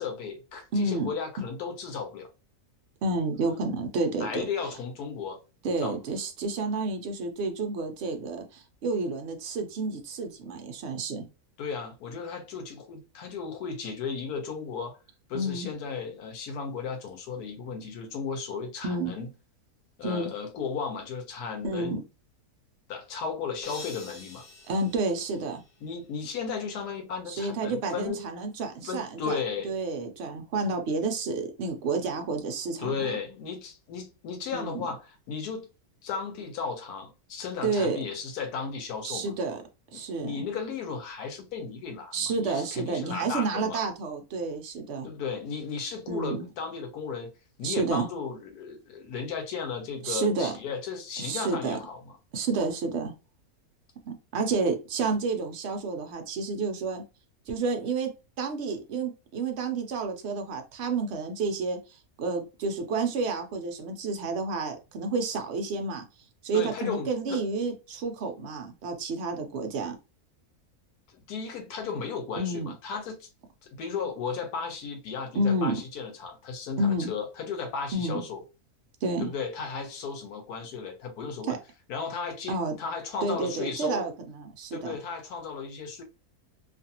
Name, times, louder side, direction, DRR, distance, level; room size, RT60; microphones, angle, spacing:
voice 1, 0.0-2.3 4.2-5.4 5.8-6.0 11.6-15.0 15.3-19.3 20.0-22.0 22.9-24.4 25.8-28.3 28.8-29.8 32.8-35.7 36.0-39.3 39.9-43.8 45.0-47.3 47.6-52.2 66.5-67.4 71.1-73.3 73.6-78.4 79.2-81.6 81.9-84.1 84.7-86.0, left 5 dB, 85° left, 1.1 m, -35 dB
voice 2, 0.7-1.1 3.0-4.4 5.6-11.3 15.3-15.7 18.8-19.1 20.0-20.3 21.6-22.0 24.7-25.6 27.3-29.4 29.6-33.2 34.5-34.9 37.6-38.0 39.0-39.6 39.9-40.4 42.1-45.1 46.1-46.5 47.6-48.1 50.0-50.5 51.2-51.8 52.3-53.1 54.1-57.0 57.5-58.1 58.4-61.8 62.2-66.0 66.4-70.0 72.4-72.7 75.3-75.8 76.8-77.1 77.9-78.2 79.0-79.3 81.5-81.6 82.5-82.7 83.2-85.0, right 3 dB, 65° right, 0.7 m, -30 dB
sound 1, 23.6-26.0, left 3 dB, 55° left, 0.6 m, -46 dB
2.5 x 2.4 x 2.7 m
omnidirectional pair, 1.6 m